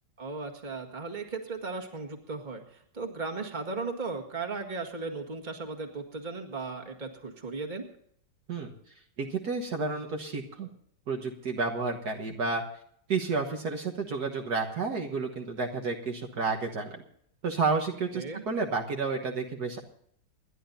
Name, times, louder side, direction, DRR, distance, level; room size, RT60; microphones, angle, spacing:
voice 1, 0.2-7.9 18.1-18.4, right 4 dB, 25° right, 3 dB, 1.8 m, -36 dB
voice 2, 9.2-10.7 11.1-12.6 13.1-17.0 17.4-19.8, right 4 dB, 60° right, 2 dB, 1.8 m, -31 dB
28.5 x 11.0 x 2.7 m, 0.67 s
omnidirectional pair, 2.0 m